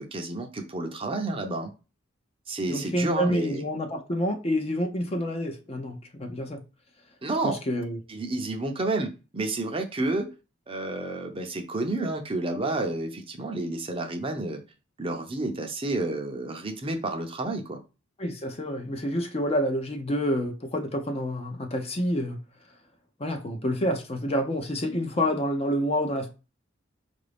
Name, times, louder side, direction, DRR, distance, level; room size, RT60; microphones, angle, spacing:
voice 1, 0.0-1.7 2.5-3.6 7.2-7.6 8.1-10.3 10.7-14.6 15.0-17.8, right 2 dB, 30° right, 0.6 m, -30 dB
voice 2, 2.7-6.6 7.4-8.0 18.2-22.4 23.2-26.3, equal, 30° left, 0.6 m, -28 dB
4.8 x 2.6 x 3.4 m
head